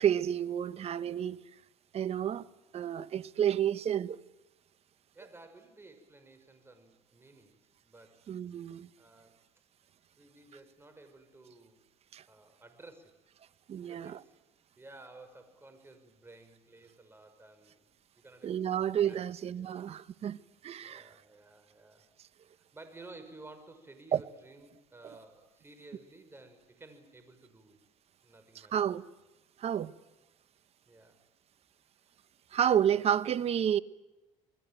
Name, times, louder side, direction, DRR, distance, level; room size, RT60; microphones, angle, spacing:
voice 1, 0.0-1.4 1.9-2.5 2.7-4.2 8.3-8.9 12.1-12.2 13.7-14.2 18.4-21.1 24.1-24.2 28.5-29.0 29.6-29.9 32.5-33.8, right 9 dB, 50° right, 1.1 m, -30 dB
voice 2, 5.1-8.2 9.0-9.4 10.2-11.8 12.3-13.2 13.8-14.4 14.8-19.2 19.6-19.8 20.8-22.1 22.5-27.8 28.2-28.7 30.9-31.2, right 2 dB, 15° right, 6.0 m, -54 dB
28.5 x 21.0 x 9.2 m
cardioid pair, 105°, 14 cm